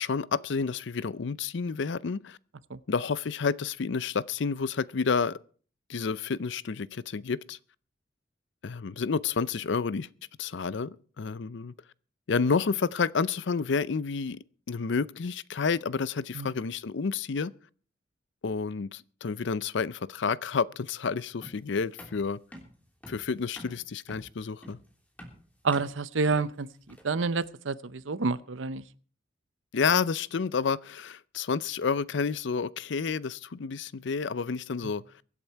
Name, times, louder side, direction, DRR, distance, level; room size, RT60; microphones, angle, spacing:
voice 1, 0.0-2.4 2.9-5.4 5.9-7.6 8.6-10.1 10.4-11.7 12.3-14.4 14.7-17.5 18.4-22.4 23.1-24.8 29.7-35.0, left 5 dB, 65° left, 0.5 m, -30 dB
sound 1, 21.4-27.3, equal, 10° left, 3.1 m, -49 dB
voice 2, 25.6-26.7 27.0-28.8, right 4 dB, 85° right, 0.7 m, -28 dB
23.0 x 8.6 x 4.6 m
head